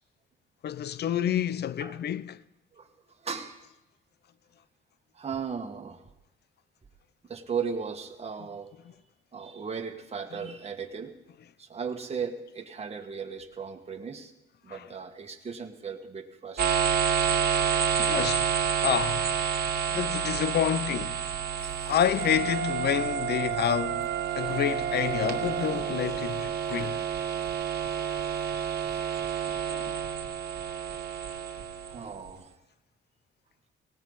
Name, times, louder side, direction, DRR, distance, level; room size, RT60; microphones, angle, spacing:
voice 1, 0.6-2.4 10.4-10.5 14.7-14.8 17.7-19.3 19.9-21.3 21.9-24.1 24.4-27.0 29.7-30.0, left 9 dB, 55° left, 0.6 m, -29 dB
voice 2, 3.2-3.7 5.1-6.0 7.2-8.7 9.3-11.1 11.6-14.3 14.6-16.7 21.6-21.9 28.9-29.0 29.8-29.9 31.9-32.5, right 6 dB, 30° right, 2.0 m, -37 dB
sound 1, 16.6-32.3, right 8 dB, 50° right, 1.8 m, -29 dB
Wind instrument woodwind instrument, 22.2-25.9, right 10 dB, 65° right, 0.6 m, -33 dB
18.5 x 17.5 x 4.1 m
cardioid pair, 90°, 20 cm